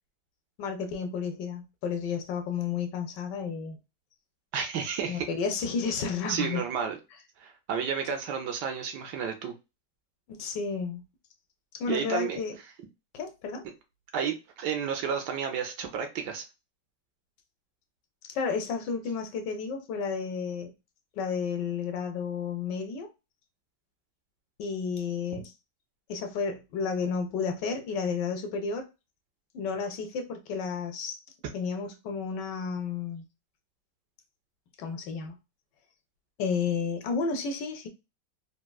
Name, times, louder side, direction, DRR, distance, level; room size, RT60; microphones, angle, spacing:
voice 1, 0.6-3.8 5.1-6.6 10.3-11.0 11.8-12.6 13.1-13.6 18.3-20.7 21.2-23.1 24.6-25.5 26.1-28.9 29.5-31.2 31.5-33.2 34.8-35.3 36.4-37.9, left 5 dB, 75° left, 1.2 m, -32 dB
voice 2, 4.5-5.3 6.3-7.0 7.4-9.5 11.9-12.4 14.1-16.4, right 7 dB, 75° right, 1.1 m, -31 dB
3.6 x 2.3 x 2.2 m
omnidirectional pair, 2.0 m